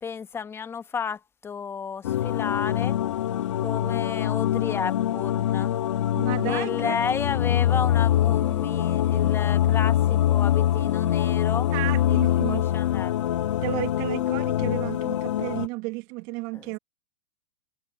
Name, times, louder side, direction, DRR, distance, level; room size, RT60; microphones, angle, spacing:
voice 1, 0.0-3.0 3.6-5.7 6.5-11.7 12.1-13.2 16.5-16.6, left 6 dB, 15° left, 1.5 m, -32 dB
sound 1, 2.0-15.7, left 12 dB, 75° left, 1.9 m, -24 dB
voice 2, 6.1-7.0 11.7-12.6 13.6-16.8, right 26 dB, 45° right, 1.8 m, -33 dB
hypercardioid pair, 125°, 16 cm